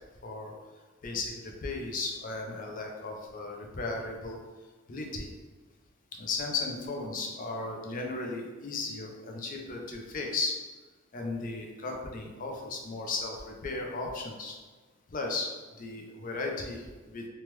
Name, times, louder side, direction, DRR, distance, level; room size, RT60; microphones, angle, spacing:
voice 1, 0.2-0.5 1.0-4.4 4.9-5.3 6.2-10.6 11.1-14.6 15.1-15.5 15.8-17.3, left 3 dB, 45° left, 1 dB, 0.5 m, -35 dB
3.2 x 2.1 x 3.0 m, 1.3 s
head